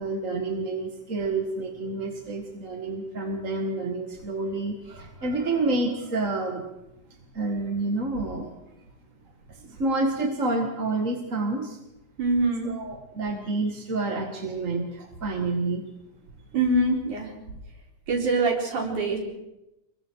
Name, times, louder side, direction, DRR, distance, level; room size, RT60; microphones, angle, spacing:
voice 1, 0.0-6.6 7.3-8.5 9.5-11.8 12.7-15.8, right 2 dB, 30° right, 2 dB, 1.8 m, -29 dB
voice 2, 12.2-12.7 16.5-17.3 18.1-19.2, right 2 dB, 85° right, -1 dB, 5.9 m, -24 dB
29.5 x 22.0 x 4.7 m, 0.93 s
omnidirectional pair, 3.4 m